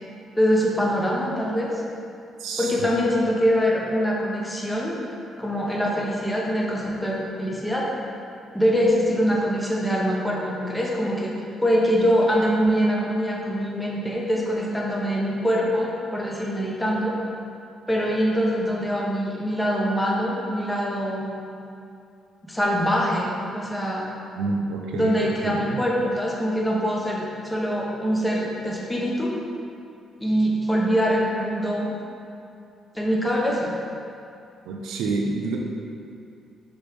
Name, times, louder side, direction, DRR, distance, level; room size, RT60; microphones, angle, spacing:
voice 1, 0.3-1.7 2.6-5.0 5.4-7.9 8.5-11.3 11.6-17.2 17.9-21.3 22.5-24.1 24.9-29.4 30.2-31.9 32.9-33.7, equal, 10° left, -3 dB, 1.1 m, -23 dB
voice 2, 2.4-2.9 24.4-25.1 25.4-25.8 34.7-35.6, right 3 dB, 90° right, 0 dB, 0.6 m, -28 dB
6.2 x 3.4 x 5.1 m, 2.5 s
cardioid pair, 90°, 0 cm